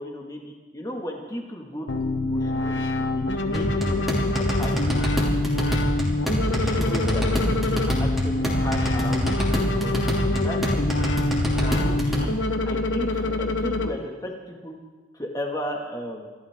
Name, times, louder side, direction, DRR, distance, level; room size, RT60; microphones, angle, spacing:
voice 1, 0.0-2.8 3.1-4.1 4.6-5.1 6.6-9.9 10.3-11.1 11.5-12.3 12.6-14.8 15.1-16.3, equal, 20° left, 0 dB, 2.2 m, -35 dB
sound 1, 1.9-13.9, left 2 dB, 80° left, 1.1 m, -26 dB
sound 2, 3.5-12.3, equal, ahead, 2.8 m, -25 dB
27.0 x 12.5 x 3.8 m, 1.3 s
head